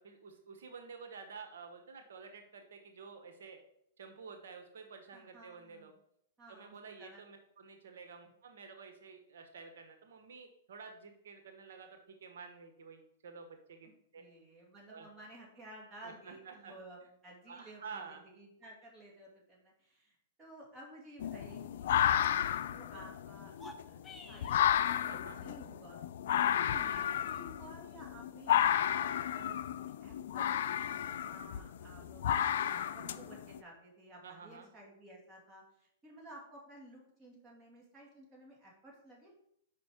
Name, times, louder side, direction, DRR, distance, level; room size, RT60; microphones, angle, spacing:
voice 1, 0.0-3.6 4.0-5.9 6.5-14.2 14.9-15.1 16.0-16.7 17.5-18.2 24.9-25.4 34.2-34.7, right 5 dB, 75° right, 6 dB, 1.0 m, -50 dB
voice 2, 5.1-5.9 6.4-7.2 13.8-23.5 23.9-26.0 26.5-28.5 28.9-29.1 29.3-29.6 30.0-39.3, right 1 dB, 20° right, -2 dB, 2.3 m, -54 dB
sound 1, 21.2-33.6, left 10 dB, 65° left, 0.4 m, -32 dB
sound 2, 23.5-24.6, left 1 dB, 10° left, 0.7 m, -51 dB
5.2 x 5.1 x 4.9 m, 0.73 s
hypercardioid pair, 135°, 0 cm